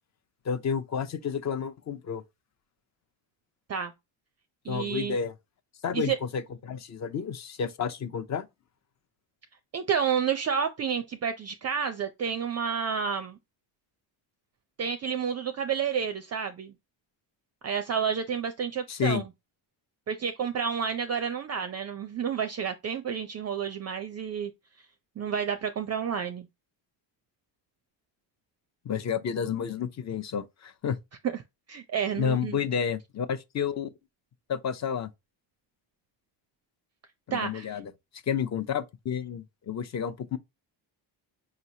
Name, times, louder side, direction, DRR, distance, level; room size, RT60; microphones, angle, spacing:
voice 1, 0.4-2.2 4.7-5.3 5.8-8.5 18.9-19.2 28.8-31.0 32.2-33.9 34.5-35.1 37.3-37.9 38.3-40.4, left 7 dB, 35° left, 0.6 m, -30 dB
voice 2, 4.6-5.2 5.9-6.2 9.7-13.4 14.8-16.7 17.6-19.2 20.1-24.5 25.2-26.5 31.2-31.3 31.7-32.6 37.3-37.8, right 7 dB, 35° right, 0.4 m, -30 dB
4.9 x 3.0 x 2.7 m
cardioid pair, 110°, 47 cm